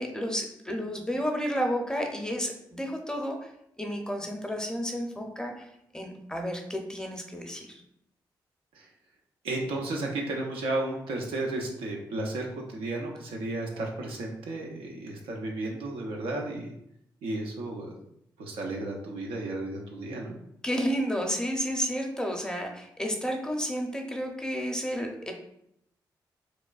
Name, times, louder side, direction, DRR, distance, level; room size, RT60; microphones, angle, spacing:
voice 1, 0.0-3.5 3.8-7.8 20.6-25.3, equal, 10° left, 2 dB, 0.6 m, -31 dB
voice 2, 9.4-16.7 17.2-17.9 18.4-20.4, right 2 dB, 80° right, 0 dB, 0.5 m, -33 dB
2.9 x 2.2 x 2.4 m, 0.76 s
supercardioid pair, 40°, 9 cm